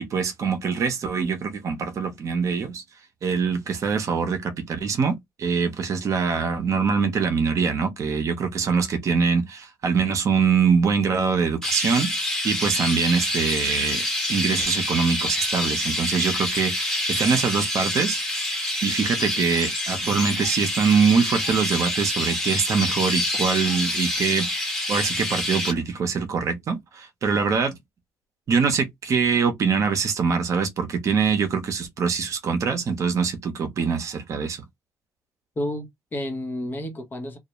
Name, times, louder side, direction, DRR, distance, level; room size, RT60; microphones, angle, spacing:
voice 1, 0.0-2.8 3.2-18.2 18.8-24.5 24.9-27.8 28.5-34.6, right 5 dB, 55° right, 0.7 m, -24 dB
Chirp tweet, 11.6-25.7, left 1 dB, 10° left, 1.1 m, -27 dB
voice 2, 35.6-37.4, left 1 dB, 30° left, 0.8 m, -31 dB
2.3 x 2.0 x 2.9 m
cardioid pair, 105°, 6 cm